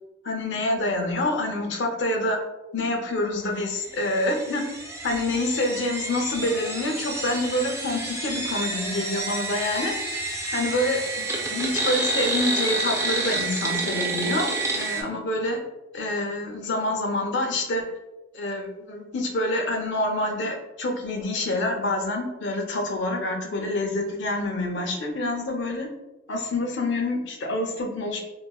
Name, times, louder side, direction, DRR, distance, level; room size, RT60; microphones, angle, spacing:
voice 1, 0.2-2.4 2.7-4.7 5.0-9.9 10.5-11.2 11.5-15.6 15.9-17.9 18.3-25.9 26.3-28.2, left 1 dB, 60° left, 2 dB, 0.5 m, -27 dB
sound 1, 3.8-15.0, right 2 dB, 15° right, 0.3 m, -29 dB
3.9 x 2.1 x 2.2 m, 1.0 s
head